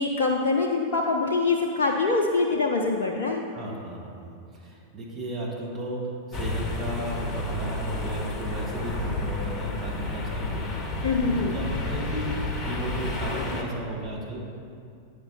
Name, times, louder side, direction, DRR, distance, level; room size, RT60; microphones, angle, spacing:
voice 1, 0.0-3.4 11.0-11.6, left 3 dB, 55° left, 0 dB, 0.5 m, -24 dB
voice 2, 3.5-14.4, right 1 dB, 30° right, -2 dB, 1.3 m, -34 dB
sound 1, 6.3-13.6, left 2 dB, 25° left, 0.9 m, -31 dB
8.7 x 5.0 x 4.1 m, 2.4 s
figure-of-eight pair, 90°, 0 cm